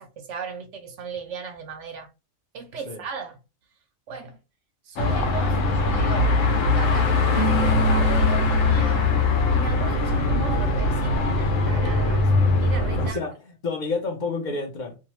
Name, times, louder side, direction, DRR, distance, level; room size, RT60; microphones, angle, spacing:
voice 1, 0.0-2.1 2.5-3.4 4.1-4.4 4.8-6.4 6.7-9.1 9.5-13.2, right 4 dB, 70° right, 0.8 m, -37 dB
Car passing by / Traffic noise roadway noise / Engine, 5.0-13.1, left 3 dB, 75° left, 1.0 m, -21 dB
Keyboard (musical), 7.4-9.3, right 6 dB, 55° right, 0.4 m, -30 dB
voice 2, 13.0-13.3 13.6-15.0, left 3 dB, 50° left, 0.6 m, -29 dB
2.7 x 2.1 x 2.9 m
omnidirectional pair, 1.4 m